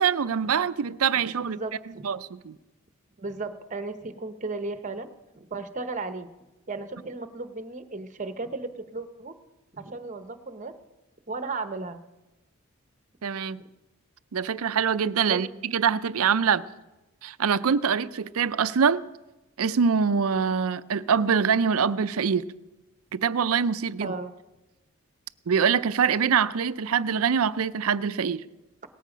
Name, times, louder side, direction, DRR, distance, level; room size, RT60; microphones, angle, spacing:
voice 1, 0.0-1.6 2.0-2.6 13.2-13.6 14.3-16.6 17.2-19.0 19.6-22.5 23.1-24.1 25.5-28.4, right 6 dB, 75° right, 0.5 m, -24 dB
voice 2, 1.4-2.0 3.2-5.1 5.3-6.3 6.7-9.3 9.7-10.7 11.3-12.0 15.2-15.4 24.0-24.3, right 3 dB, 35° right, 0.9 m, -35 dB
18.5 x 14.0 x 5.1 m
head